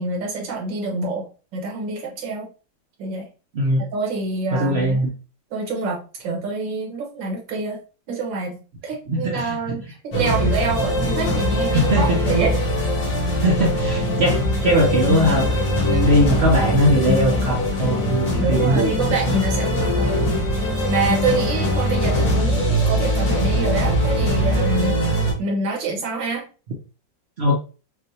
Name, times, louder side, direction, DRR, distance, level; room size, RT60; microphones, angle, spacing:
voice 1, 0.0-2.5 3.0-3.3 3.8-5.0 5.5-7.8 8.1-12.6 18.4-20.3 20.6-25.0 25.4-26.4, right 4 dB, 75° right, 0 dB, 1.9 m, -26 dB
voice 2, 4.5-5.1 9.1-9.6 11.7-12.2 13.4-15.5 15.8-18.9 27.4-27.6, equal, 55° right, -1 dB, 0.7 m, -20 dB
sound 1, 10.1-25.3, equal, 80° left, 2.2 m, -21 dB
6.0 x 2.5 x 2.7 m, 0.35 s
omnidirectional pair, 2.0 m